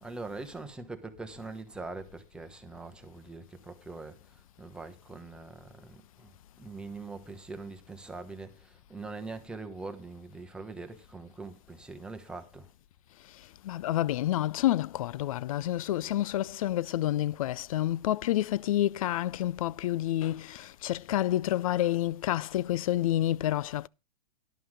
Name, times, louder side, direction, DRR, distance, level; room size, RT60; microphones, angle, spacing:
voice 1, 0.0-4.2 4.6-6.3 6.6-12.7, right 3 dB, 5° right, 1.1 m, -42 dB
voice 2, 13.6-23.9, left 13 dB, 65° left, 0.4 m, -29 dB
11.5 x 5.6 x 6.3 m
hypercardioid pair, 145°, 19 cm